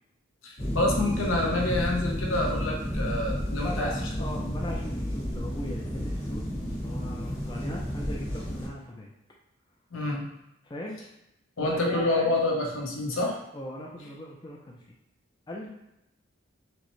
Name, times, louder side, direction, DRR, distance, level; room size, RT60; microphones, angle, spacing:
voice 1, 0.4-3.9 4.2-4.5 9.9-10.2 11.6-13.4, left 2 dB, 80° left, -1 dB, 0.9 m, -27 dB
sound 1, 0.6-8.7, equal, 65° left, 1.4 m, -31 dB
voice 2, 3.6-9.1 10.6-11.0 11.6-12.3 13.5-14.8 15.5-15.7, left 1 dB, 20° left, -2 dB, 0.4 m, -39 dB
6.1 x 2.1 x 3.1 m, 0.86 s
head